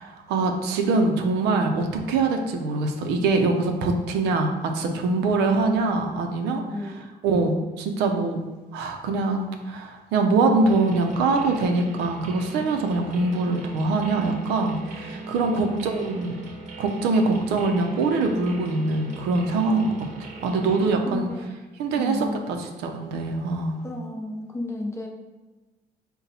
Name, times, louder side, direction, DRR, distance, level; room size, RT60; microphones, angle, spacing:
voice 1, 0.0-7.0 7.2-8.4 8.7-16.4 16.8-21.3 21.8-23.7, right 3 dB, 85° right, 4 dB, 0.6 m, -24 dB
voice 2, 5.2-5.6 6.7-7.1 15.5-15.6 21.0-21.6 22.0-22.4 23.8-25.1, left 2 dB, 15° left, 0 dB, 0.6 m, -32 dB
sound 1, 10.7-20.9, right 3 dB, 45° right, 0.8 m, -39 dB
4.0 x 2.2 x 4.0 m, 1.2 s
cardioid pair, 110°, 17 cm